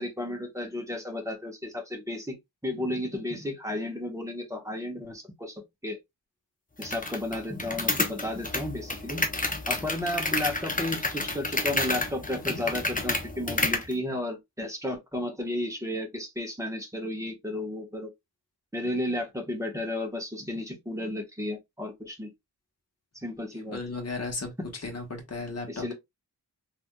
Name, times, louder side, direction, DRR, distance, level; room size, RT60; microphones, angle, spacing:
voice 1, 0.0-2.4 2.6-6.0 6.8-9.2 9.7-18.1 18.7-22.3 23.2-23.8 24.6-24.7 25.7-25.9, left 1 dB, 5° right, 1.2 m, -33 dB
sound 1, 6.8-13.9, left 2 dB, 20° left, 0.8 m, -30 dB
voice 2, 23.7-25.9, left 3 dB, 35° left, 1.2 m, -35 dB
3.3 x 2.8 x 2.2 m
wide cardioid pair, 60°, 44 cm